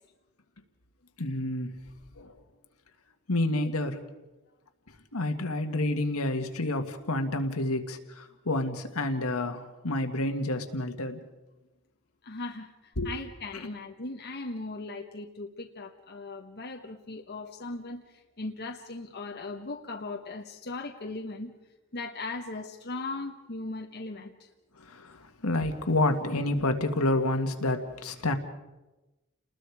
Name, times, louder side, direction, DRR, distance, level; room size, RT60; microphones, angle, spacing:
voice 1, 1.2-1.8 2.2-2.3 3.3-4.0 5.1-11.2 13.0-13.1 24.8-28.3, left 2 dB, 75° left, 6 dB, 1.8 m, -29 dB
voice 2, 12.2-21.5 21.9-24.5, left 3 dB, 50° left, 2 dB, 1.2 m, -38 dB
30.0 x 20.5 x 4.9 m, 1.1 s
head